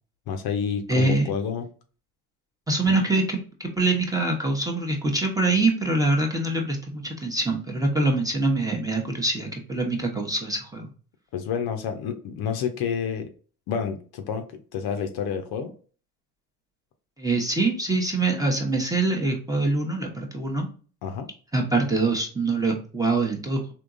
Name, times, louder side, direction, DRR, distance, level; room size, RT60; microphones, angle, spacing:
voice 1, 0.3-1.7 2.9-3.0 11.3-13.3 13.7-15.7 21.0-21.3, left 7 dB, 50° left, 6 dB, 0.6 m, -29 dB
voice 2, 0.9-1.3 2.7-10.9 17.2-20.7 21.5-23.7, right 2 dB, 5° right, 1 dB, 0.8 m, -24 dB
3.6 x 2.8 x 2.5 m, 0.39 s
hypercardioid pair, 75°, 48 cm